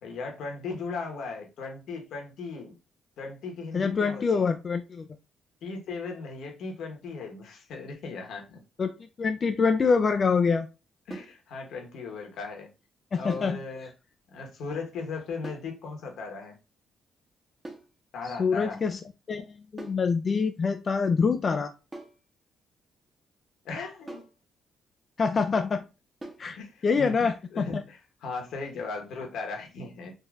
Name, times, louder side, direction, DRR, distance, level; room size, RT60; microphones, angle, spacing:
voice 1, 0.0-2.8 3.2-4.5 5.6-8.6 11.1-12.7 13.1-13.9 14.3-16.6 18.1-18.8 23.6-24.2 26.4-27.1 27.5-30.1, left 4 dB, 75° left, 1.0 m, -37 dB
voice 2, 3.7-5.1 8.8-8.9 9.2-10.7 13.1-13.6 18.2-19.0 19.3-21.7 25.2-25.8 26.4-26.6 26.8-27.8, left 5 dB, 40° left, 0.3 m, -25 dB
sound 1, 11.1-11.4 13.3-13.6 15.4-15.7 17.6-17.9 19.8-20.1 21.9-22.2 24.1-24.4 26.2-26.5, right 2 dB, 20° right, 1.0 m, -42 dB
3.7 x 2.6 x 2.4 m
cardioid pair, 90°, 0 cm